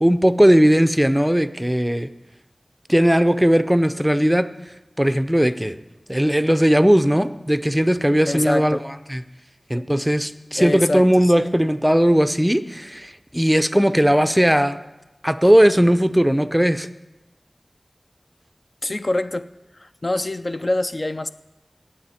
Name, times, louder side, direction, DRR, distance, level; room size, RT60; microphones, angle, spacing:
voice 1, 0.0-2.1 2.9-4.5 5.0-5.8 6.1-8.8 9.1-9.2 9.7-14.8 15.2-16.9, equal, 5° right, 11 dB, 0.5 m, -18 dB
voice 2, 8.3-8.8 9.8-9.9 10.6-11.3 18.8-19.5 19.7-21.3, left 1 dB, 45° left, 11 dB, 0.4 m, -25 dB
18.0 x 7.5 x 4.3 m, 1.0 s
wide cardioid pair, 55°, 0 cm